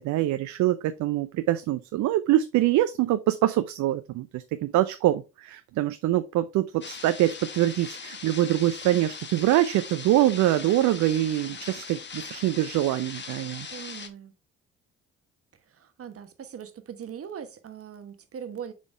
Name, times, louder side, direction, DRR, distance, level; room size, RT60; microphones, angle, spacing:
voice 1, 0.0-13.7, right 14 dB, 60° right, 0.5 m, -24 dB
sound 1, 6.8-14.1, left 5 dB, 35° left, 1.0 m, -40 dB
voice 2, 13.7-14.3 15.6-18.7, right 8 dB, 45° right, 1.1 m, -40 dB
7.4 x 3.8 x 3.3 m
hypercardioid pair, 45°, 33 cm